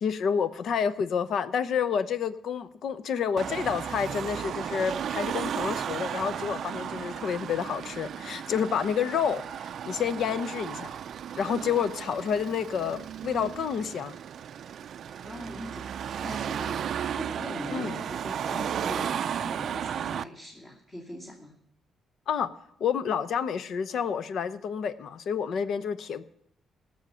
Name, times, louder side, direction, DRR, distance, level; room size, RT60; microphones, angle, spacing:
voice 1, 0.0-11.0 11.4-14.2 17.7-18.0 22.3-22.5 22.8-26.2, left 7 dB, 65° left, 15 dB, 0.7 m, -29 dB
Car passing by / Traffic noise roadway noise / Engine, 3.4-20.2, right 9 dB, 65° right, 0.4 m, -34 dB
voice 2, 15.2-21.5, left 1 dB, 30° left, -4 dB, 2.5 m, -41 dB
17.5 x 6.4 x 6.8 m, 0.75 s
cardioid pair, 105°, 0 cm